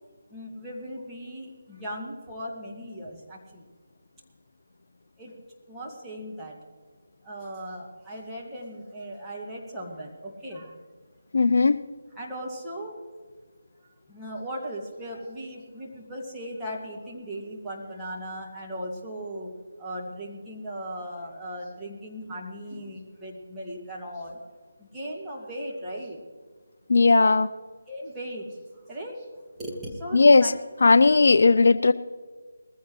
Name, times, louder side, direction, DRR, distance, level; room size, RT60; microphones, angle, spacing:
voice 1, 0.3-3.6 5.2-5.4 5.7-6.6 7.2-10.8 12.2-13.0 14.1-19.5 19.8-24.4 24.8-26.2 27.9-28.5 28.8-29.3 29.6-30.5 30.9-31.1, equal, 5° right, -6 dB, 2.1 m, -37 dB
voice 2, 11.3-11.8 26.9-27.5 30.1-30.5 30.8-31.9, left 3 dB, 55° left, 14 dB, 0.4 m, -17 dB
20.0 x 15.0 x 3.2 m, 1.5 s
figure-of-eight pair, 155°, 0 cm